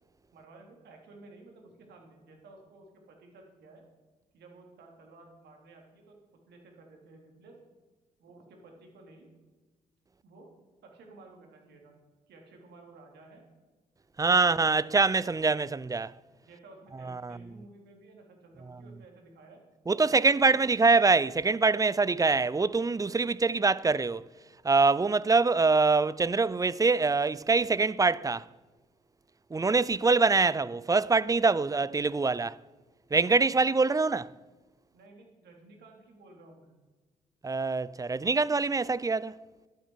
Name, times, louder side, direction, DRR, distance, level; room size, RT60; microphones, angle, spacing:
voice 1, 0.3-3.8 4.3-7.6 8.2-9.3 10.2-10.5 10.8-12.0 12.3-13.5 16.4-19.6 20.0-20.8 34.9-36.8, right 2 dB, 65° right, 3.3 m, -54 dB
voice 2, 14.2-16.1 17.1-17.4 19.9-24.2 24.6-28.5 29.5-32.6 33.1-34.3 37.4-39.3, right 4 dB, 20° right, 0.5 m, -24 dB
12.5 x 11.5 x 4.7 m
hypercardioid pair, 45°, 18 cm